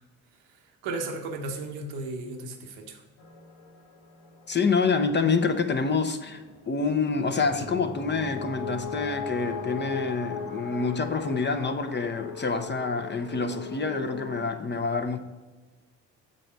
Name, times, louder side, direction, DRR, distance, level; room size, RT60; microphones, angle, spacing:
voice 1, 0.8-3.0, right 3 dB, 85° right, 3 dB, 1.0 m, -34 dB
sound 1, 3.2-14.4, left 4 dB, 75° left, 1.1 m, -39 dB
voice 2, 4.5-15.2, left 4 dB, 30° left, 8 dB, 0.8 m, -27 dB
7.7 x 4.1 x 4.5 m, 1.3 s
hypercardioid pair, 50°, 36 cm